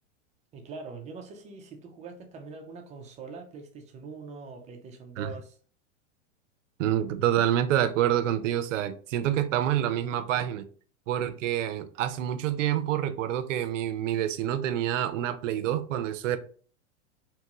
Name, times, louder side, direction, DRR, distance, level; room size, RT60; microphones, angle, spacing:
voice 1, 0.5-5.6, right 4 dB, 20° right, 0.4 m, -43 dB
voice 2, 6.8-10.6 11.1-16.4, right 11 dB, 70° right, 0.5 m, -27 dB
3.0 x 2.2 x 2.9 m
hypercardioid pair, 120°, 39 cm